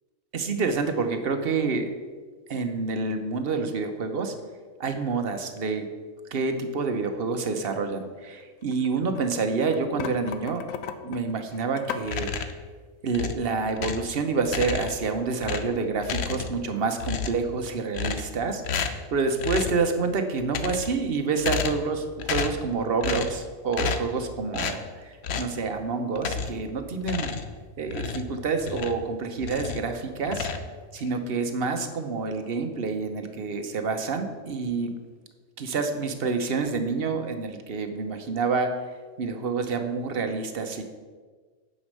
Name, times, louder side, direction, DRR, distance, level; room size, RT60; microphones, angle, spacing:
voice 1, 0.3-1.9 2.5-4.3 4.8-5.9 6.3-10.6 11.0-12.5 13.0-27.3 27.8-30.5 30.9-34.9 35.6-38.8 39.2-40.8, right 4 dB, 50° right, 6 dB, 1.0 m, -28 dB
sound 1, 8.4-9.3 9.6-12.1, left 7 dB, 80° left, 1.0 m, -36 dB
sound 2, 12.0-12.7 13.1-14.1 14.5-15.1 15.4-16.7 17.0-17.5 17.9-18.4 18.6-19.1 19.4-19.8 20.4-21.0 21.4-21.9 22.2-22.7 23.0-23.4 23.7-24.2 24.5-24.8 25.2-25.6 26.2-26.7 27.0-29.1 29.4-29.9 30.2-31.1, left 6 dB, 60° left, 0.9 m, -31 dB
9.3 x 5.3 x 6.5 m, 1.4 s
omnidirectional pair, 1.4 m